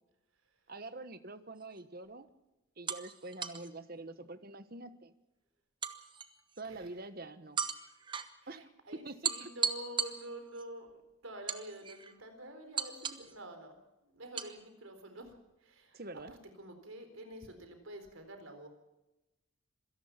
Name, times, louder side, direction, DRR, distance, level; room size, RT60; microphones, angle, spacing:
voice 1, 0.7-2.3 2.8-5.1 6.6-7.6 8.5-8.7 9.0-9.5 15.9-16.3, right 2 dB, 45° right, 12 dB, 1.2 m, -46 dB
sound 1, 1.6-1.8 2.9-3.7 5.8-6.6 7.6-8.3 9.2-10.6 11.5-12.1 12.8-13.3 14.4-14.5, right 6 dB, 20° right, 1.1 m, -37 dB
voice 2, 8.4-13.7 14.0-15.3 15.6-16.0 16.3-18.7, right 1 dB, 75° right, 7 dB, 4.1 m, -48 dB
26.0 x 18.0 x 5.9 m, 0.97 s
head